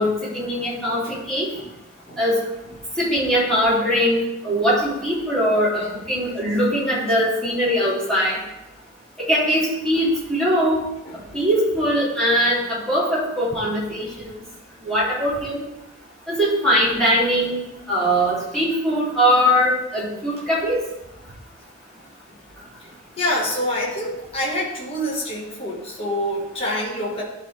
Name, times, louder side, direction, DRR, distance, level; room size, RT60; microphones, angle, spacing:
voice 1, 0.0-1.5 2.2-2.4 3.0-8.4 9.2-10.8 11.3-14.3 14.8-15.6 16.3-20.8, equal, 5° left, -9 dB, 2.9 m, -21 dB
voice 2, 11.0-11.4 22.8-27.2, left 1 dB, 30° left, -5 dB, 1.7 m, -27 dB
12.0 x 4.2 x 3.4 m, 0.94 s
head